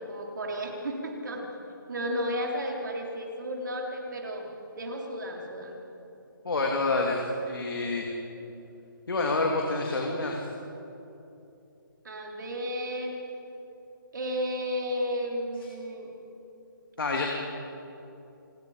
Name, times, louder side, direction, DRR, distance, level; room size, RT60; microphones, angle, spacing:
voice 1, 0.0-1.5 1.9-4.5 4.8-5.7 12.0-13.2 14.1-16.1, equal, 60° right, 1 dB, 3.9 m, -33 dB
voice 2, 6.4-8.1 9.1-10.5 17.0-17.3, left 3 dB, 75° left, 0 dB, 2.9 m, -28 dB
27.0 x 21.0 x 5.1 m, 2.8 s
hypercardioid pair, 175°, 12 cm